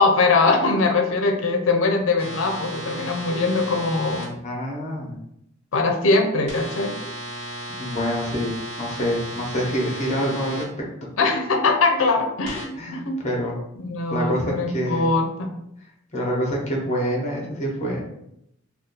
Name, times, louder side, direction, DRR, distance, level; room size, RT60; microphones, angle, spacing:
voice 1, 0.0-4.3 5.7-7.0 11.2-13.2 13.8-15.5, left 3 dB, 75° left, 4 dB, 0.5 m, -21 dB
sound 1, 2.2-4.2 6.5-10.6 12.4-12.6, right 1 dB, 35° right, 1.3 m, -34 dB
voice 2, 4.2-5.2 7.8-8.5 8.8-10.7 12.7-13.5 14.1-15.1 16.1-18.0, equal, 35° left, -1 dB, 0.8 m, -26 dB
2.6 x 2.2 x 3.9 m, 0.77 s
head